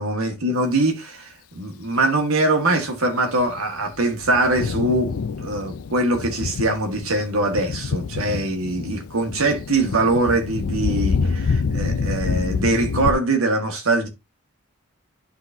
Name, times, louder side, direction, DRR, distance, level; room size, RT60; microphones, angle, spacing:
voice 1, 0.0-14.1, right 2 dB, 75° right, 1.7 m, -22 dB
Thunder, 3.4-13.1, left 5 dB, 80° left, 0.5 m, -27 dB
11.5 x 3.9 x 2.7 m
head